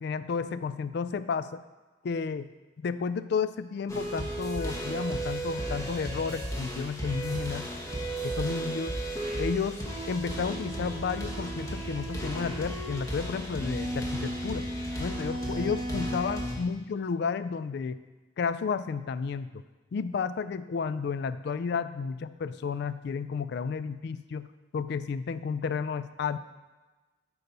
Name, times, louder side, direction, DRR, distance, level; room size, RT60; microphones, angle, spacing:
voice 1, 0.0-1.6 2.0-2.5 2.8-7.7 8.2-9.0 9.4-14.7 15.0-18.0 18.4-19.6 19.9-24.5 24.7-26.4, left 5 dB, 55° left, 14 dB, 0.3 m, -32 dB
sound 1, 3.9-16.5, right 1 dB, 15° left, 1.0 m, -34 dB
8.5 x 4.0 x 5.4 m, 1.2 s
head